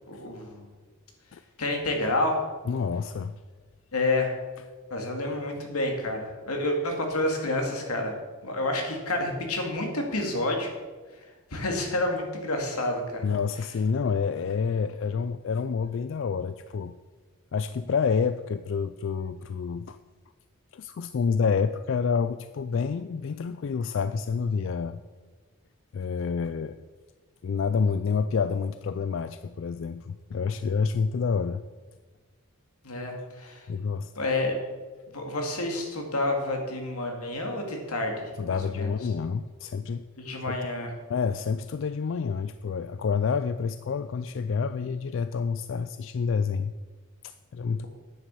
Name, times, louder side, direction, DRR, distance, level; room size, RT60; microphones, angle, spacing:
voice 1, 0.1-0.7 1.6-2.4 3.9-4.3 4.9-8.1 8.4-10.7 11.5-13.2 32.8-33.7 34.2-34.5 35.1-38.9 40.2-40.9 47.7-47.9, left 2 dB, 90° left, 2 dB, 2.3 m, -29 dB
voice 2, 2.7-3.4 13.2-17.0 17.5-20.0 20.7-25.0 25.9-26.8 27.4-31.6 33.7-34.1 38.4-40.0 40.5-40.6 41.1-46.7 47.2-47.9, left 5 dB, 60° left, 12 dB, 0.3 m, -28 dB
9.3 x 7.4 x 7.0 m, 1.4 s
head